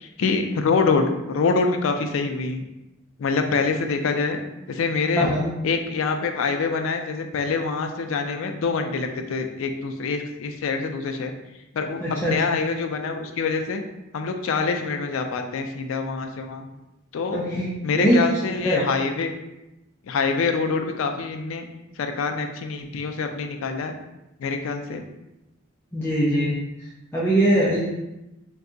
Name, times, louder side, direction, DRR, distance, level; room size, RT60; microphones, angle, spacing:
voice 1, 0.0-2.6 3.2-4.4 4.7-5.3 5.6-11.3 11.7-13.8 14.1-16.6 17.1-17.4 17.8-19.3 20.1-21.7 22.0-24.0 24.4-25.0, left 4 dB, 80° left, 5 dB, 0.4 m, -25 dB
voice 2, 12.0-12.4 17.3-17.7 17.9-18.9 25.9-26.6 27.1-27.8, right 1 dB, 10° left, -8 dB, 0.4 m, -21 dB
2.6 x 2.2 x 3.7 m, 0.94 s
head